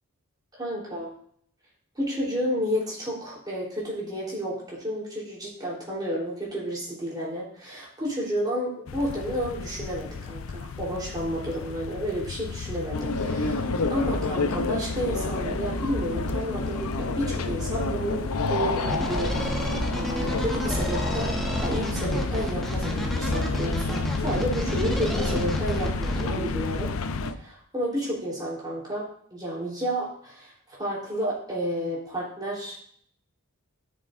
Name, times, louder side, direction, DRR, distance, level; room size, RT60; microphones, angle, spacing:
voice 1, 0.5-1.1 2.0-19.6 19.9-26.9 27.3-29.0 29.3-32.8, equal, 20° right, -5 dB, 3.4 m, -31 dB
sound 1, 8.9-27.3, left 5 dB, 60° left, 0.4 m, -35 dB
sound 2, 12.9-27.3, left 2 dB, 85° left, 0.7 m, -30 dB
sound 3, 18.9-26.2, equal, ahead, 1.2 m, -30 dB
13.0 x 6.5 x 2.6 m, 0.62 s
head